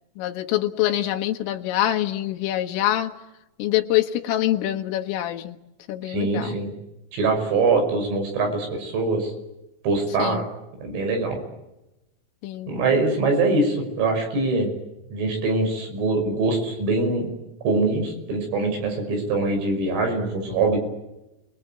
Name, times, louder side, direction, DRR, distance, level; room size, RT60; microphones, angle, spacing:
voice 1, 0.2-3.1 3.6-5.6 5.9-6.6 10.2-10.4 12.4-12.7, left 13 dB, 85° left, 4 dB, 4.1 m, -25 dB
voice 2, 6.1-6.7 7.1-9.3 9.8-10.5 10.8-11.4 12.7-14.7 15.1-17.3 17.6-20.8, right 3 dB, 80° right, 3 dB, 8.5 m, -23 dB
30.0 x 21.5 x 8.9 m, 0.96 s
omnidirectional pair, 5.8 m